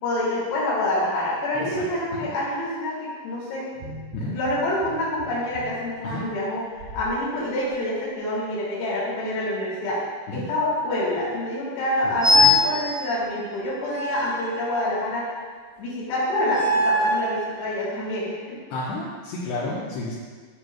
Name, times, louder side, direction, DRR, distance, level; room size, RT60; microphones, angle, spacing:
voice 1, 0.0-3.7 4.2-10.0 10.3-15.3 15.8-18.6, left 1 dB, 90° left, -7 dB, 5.6 m, -27 dB
sound 1, 3.7-7.2 7.6-7.8, right 1 dB, 75° right, 3.8 m, -41 dB
sound 2, 12.2-12.7 13.9-15.1 16.4-17.3, left 2 dB, 15° right, 0.6 m, -21 dB
voice 2, 18.7-20.1, left 2 dB, 75° left, -8 dB, 2.6 m, -31 dB
18.0 x 6.0 x 2.4 m, 1.6 s
omnidirectional pair, 5.9 m